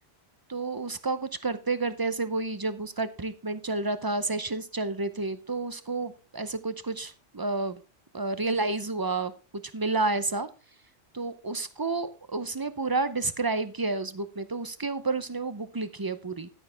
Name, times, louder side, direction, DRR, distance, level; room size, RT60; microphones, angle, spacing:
voice 1, 0.5-7.8 8.1-9.3 9.7-10.5 11.1-16.5, right 3 dB, 30° right, 12 dB, 0.4 m, -30 dB
11.5 x 9.2 x 3.4 m, 0.31 s
omnidirectional pair, 1.2 m